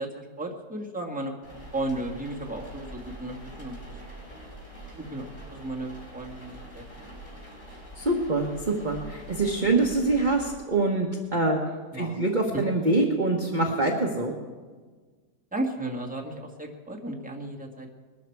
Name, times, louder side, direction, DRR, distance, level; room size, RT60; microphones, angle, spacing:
voice 1, 0.0-1.3 1.7-4.0 5.0-6.8 11.9-12.2 15.5-17.9, right 1 dB, 5° right, -1 dB, 1.8 m, -34 dB
sound 1, 1.4-10.5, right 1 dB, 45° left, 5.6 m, -44 dB
voice 2, 8.0-11.6 11.9-14.3, right 2 dB, 30° right, 0 dB, 1.3 m, -25 dB
21.5 x 13.0 x 4.7 m, 1.4 s
omnidirectional pair, 1.7 m